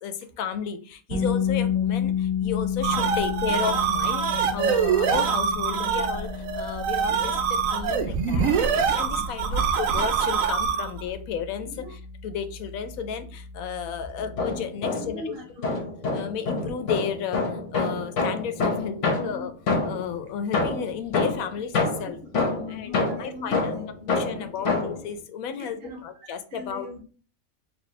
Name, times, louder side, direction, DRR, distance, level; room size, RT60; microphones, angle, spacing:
voice 1, 0.0-15.8 16.1-19.5 19.8-22.2 22.7-23.8 24.1-27.0, left 7 dB, 90° left, 9 dB, 1.0 m, -33 dB
sound 1, 1.1-12.9, left 8 dB, 25° right, 1.4 m, -31 dB
sound 2, 2.5-11.0, right 7 dB, 80° right, 1.0 m, -24 dB
voice 2, 9.2-9.6 11.6-11.9 14.5-15.7 19.2-19.5 22.3-24.7 25.6-27.0, left 2 dB, 50° right, 1 dB, 0.9 m, -41 dB
sound 3, 14.2-15.3 15.6-20.1 20.5-25.1, left 3 dB, 65° left, 1.3 m, -27 dB
4.3 x 2.8 x 3.2 m, 0.39 s
omnidirectional pair, 1.4 m